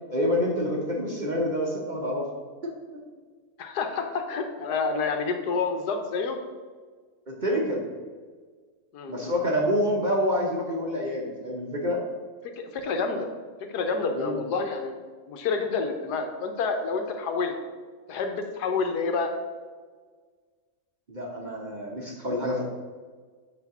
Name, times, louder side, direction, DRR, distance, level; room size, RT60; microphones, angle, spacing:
voice 1, 0.1-2.3 2.6-2.7 7.3-7.8 9.1-12.0 14.1-14.4 21.1-22.6, equal, 35° right, -2 dB, 0.8 m, -27 dB
voice 2, 3.6-6.4 8.9-9.3 12.6-13.3 13.7-14.9 15.3-17.5 18.1-19.3, left 4 dB, 85° left, 5 dB, 1.4 m, -28 dB
8.0 x 3.2 x 5.9 m, 1.5 s
omnidirectional pair, 1.7 m